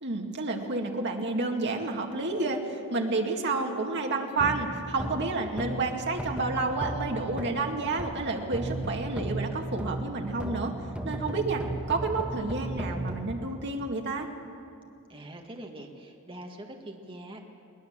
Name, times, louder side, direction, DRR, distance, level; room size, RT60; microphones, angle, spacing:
voice 1, 0.0-10.7 11.0-11.6 11.9-14.3, right 3 dB, 55° right, 2 dB, 2.1 m, -30 dB
sound 1, 4.4-8.3 8.5-13.2, right 1 dB, 5° right, 1.7 m, -35 dB
voice 2, 15.1-17.4, right 1 dB, 25° right, 2 dB, 1.5 m, -43 dB
22.0 x 18.5 x 7.5 m, 2.7 s
head